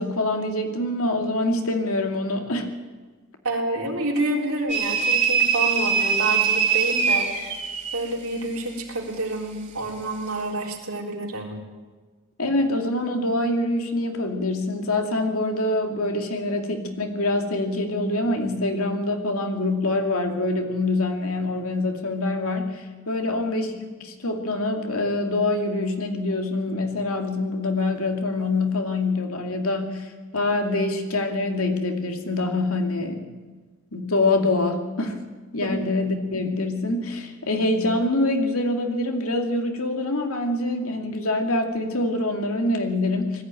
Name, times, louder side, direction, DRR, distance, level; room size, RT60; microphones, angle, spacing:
voice 1, 0.0-2.7 12.4-23.7 24.0-33.2 33.9-35.2 35.5-43.4, left 2 dB, 85° left, 4 dB, 2.4 m, -25 dB
voice 2, 3.4-7.3 7.9-11.6 23.1-23.2 35.6-35.7, right 2 dB, 80° right, 0 dB, 3.8 m, -28 dB
sound 1, 4.7-8.0, right 6 dB, 35° right, 2.7 m, -22 dB
20.0 x 15.0 x 9.1 m, 1.4 s
head